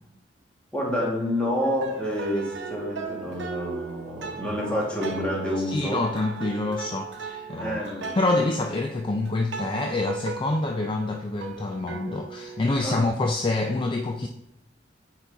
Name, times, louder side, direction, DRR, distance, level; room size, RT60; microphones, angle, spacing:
voice 1, 0.7-6.0 7.6-8.1 12.8-13.0, equal, 5° left, -4 dB, 1.9 m, -28 dB
sound 1, 1.6-12.7, right 3 dB, 85° right, 0.8 m, -37 dB
voice 2, 5.7-7.8 8.2-14.3, left 2 dB, 30° left, 3 dB, 0.4 m, -26 dB
8.5 x 4.1 x 3.5 m, 0.83 s
head